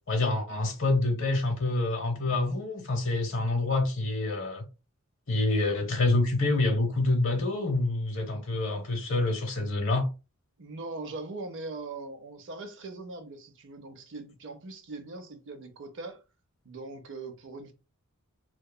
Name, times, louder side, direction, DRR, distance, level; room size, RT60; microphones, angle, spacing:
voice 1, 0.1-4.6 5.3-10.1, left 2 dB, 60° left, 0.9 m, -27 dB
voice 2, 10.6-16.2 16.6-17.7, right 3 dB, 60° right, 0.5 m, -41 dB
2.8 x 2.3 x 2.2 m
head